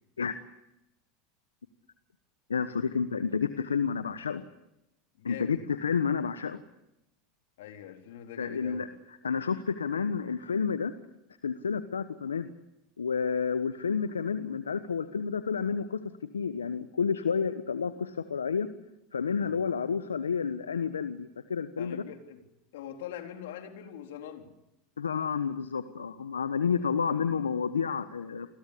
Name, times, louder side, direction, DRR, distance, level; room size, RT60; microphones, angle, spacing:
voice 1, 2.5-4.4 5.2-6.6 8.4-8.9 9.2-10.9 11.4-12.5 13.0-16.0 16.3-18.7 19.1-22.0 25.0-28.5, left 6 dB, 90° left, 11 dB, 1.2 m, -30 dB
voice 2, 5.2-5.6 7.6-8.9 19.4-19.6 21.8-22.4 22.7-24.5, left 10 dB, 70° left, 5 dB, 3.9 m, -43 dB
29.5 x 21.5 x 8.6 m, 0.89 s
hypercardioid pair, 85°, 0 cm